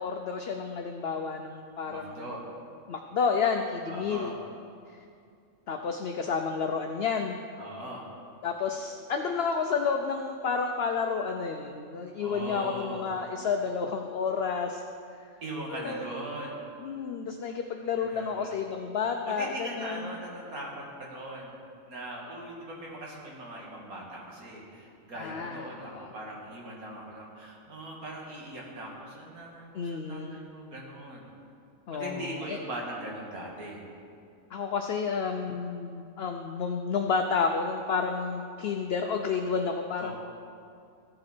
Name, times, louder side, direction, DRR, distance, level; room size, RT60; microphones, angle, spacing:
voice 1, 0.0-2.3 2.9-4.3 5.7-7.4 8.4-14.8 15.7-16.0 16.8-20.0 25.2-26.1 29.7-30.4 31.9-32.6 34.5-40.1, left 5 dB, 60° left, 4 dB, 0.7 m, -30 dB
voice 2, 1.8-2.4 3.8-4.4 7.6-8.1 12.2-13.1 15.4-16.6 18.0-18.5 19.3-21.6 21.9-31.3 31.9-33.8 40.0-40.1, right 1 dB, 90° right, -3 dB, 2.4 m, -40 dB
15.0 x 7.7 x 4.3 m, 2.4 s
omnidirectional pair, 1.5 m